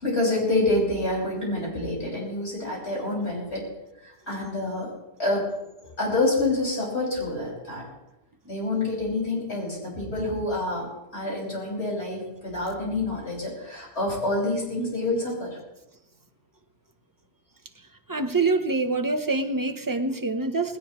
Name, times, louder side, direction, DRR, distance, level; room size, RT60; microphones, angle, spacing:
voice 1, 0.0-3.6 4.0-4.9 5.2-5.5 5.8-7.8 8.5-10.9 11.1-15.6, left 2 dB, 80° left, -3 dB, 6.3 m, -27 dB
voice 2, 18.1-20.8, right 3 dB, 20° right, 7 dB, 0.9 m, -25 dB
19.5 x 17.5 x 3.1 m, 0.94 s
omnidirectional pair, 1.1 m